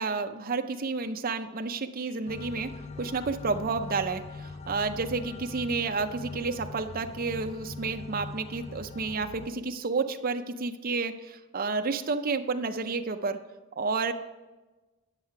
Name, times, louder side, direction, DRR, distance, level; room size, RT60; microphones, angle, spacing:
voice 1, 0.0-13.4 13.8-14.1, right 4 dB, 40° right, 7 dB, 0.5 m, -31 dB
sound 1, 2.3-9.5, left 4 dB, 30° left, 0.3 m, -41 dB
9.7 x 6.5 x 5.8 m, 1.2 s
head